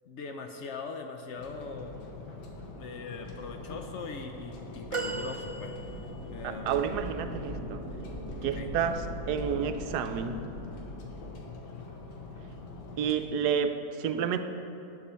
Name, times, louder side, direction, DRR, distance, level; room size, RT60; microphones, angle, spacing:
voice 1, 0.1-2.0 2.8-5.8 6.3-7.0 8.5-8.7, left 4 dB, 65° left, 5 dB, 0.7 m, -41 dB
sound 1, 1.4-13.1, left 3 dB, 85° left, 1.7 m, -44 dB
sound 2, 3.4-11.4, equal, 50° left, 2.7 m, -42 dB
sound 3, 4.9-6.3 7.1-7.2, right 3 dB, 45° right, 0.4 m, -36 dB
voice 2, 6.4-7.8 8.4-10.5 13.0-14.4, right 7 dB, 75° right, 8 dB, 1.1 m, -30 dB
9.3 x 7.2 x 6.7 m, 2.8 s
omnidirectional pair, 1.8 m